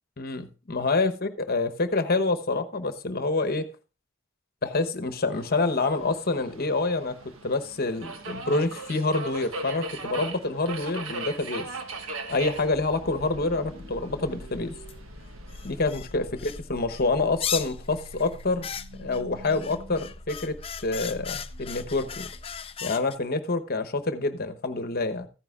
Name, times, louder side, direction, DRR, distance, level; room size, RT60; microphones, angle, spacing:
voice 1, 0.2-3.7 4.6-11.7 12.3-14.8 15.6-18.7 18.9-22.3 22.8-25.3, left 3 dB, 50° left, 9 dB, 1.0 m, -27 dB
Subway metro underground, 5.3-15.9, right 2 dB, 85° right, 1.4 m, -39 dB
sound 1, 12.2-22.8, left 1 dB, 70° right, 6.1 m, -44 dB
sound 2, 14.9-15.0 15.5-16.6 16.9-23.1, left 9 dB, 30° left, 0.4 m, -36 dB
15.0 x 9.6 x 2.4 m, 0.32 s
head